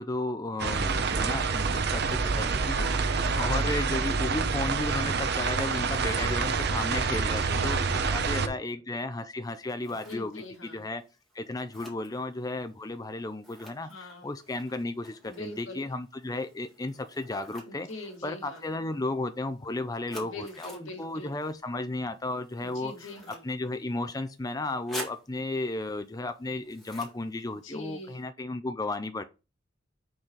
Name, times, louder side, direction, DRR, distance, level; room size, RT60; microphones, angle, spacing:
voice 1, 0.0-11.0 11.3-17.9 18.2-23.1 23.4-29.2, left 2 dB, 20° left, 0.5 m, -34 dB
sound 1, 0.6-8.5, right 4 dB, 55° right, 0.7 m, -27 dB
voice 2, 2.3-3.4 5.9-6.3 7.4-8.8 9.8-10.9 13.8-14.3 15.2-15.9 17.7-18.6 20.1-21.3 22.6-23.4 27.6-28.2, left 2 dB, 80° left, 2.1 m, -43 dB
Scissors, 9.4-28.2, equal, ahead, 2.0 m, -50 dB
6.3 x 4.1 x 4.6 m
head